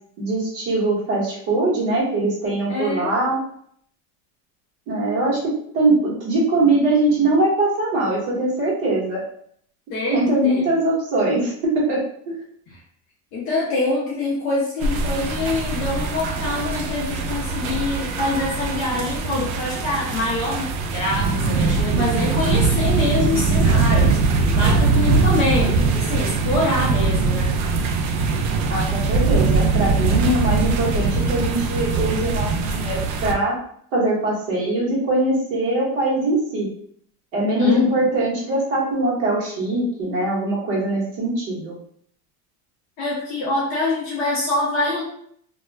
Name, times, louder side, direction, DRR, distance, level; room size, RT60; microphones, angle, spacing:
voice 1, 0.2-3.4 4.9-9.2 10.1-12.3 28.7-33.5 33.9-36.7 37.3-41.7, right 2 dB, 40° right, -5 dB, 1.0 m, -22 dB
voice 2, 2.7-3.1 9.9-10.6 12.7-12.8 13.3-24.2 24.6-27.5 37.6-38.0 43.0-45.0, left 2 dB, 35° left, -4 dB, 0.4 m, -25 dB
raining over metal surface ambience, 14.8-33.3, right 4 dB, 65° right, 0.5 m, -21 dB
2.3 x 2.0 x 3.2 m, 0.66 s
supercardioid pair, 165°, 44 cm